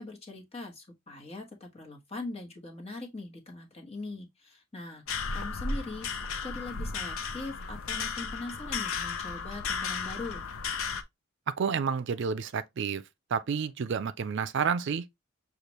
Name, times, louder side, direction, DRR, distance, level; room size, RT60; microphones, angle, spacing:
voice 1, 0.0-6.1 6.4-10.4, left 2 dB, 30° left, 1.2 m, -41 dB
sound 1, 5.1-11.0, left 5 dB, 80° left, 0.6 m, -34 dB
voice 2, 11.5-13.0 13.3-15.1, right 6 dB, 60° right, 0.4 m, -30 dB
6.7 x 2.4 x 3.0 m
head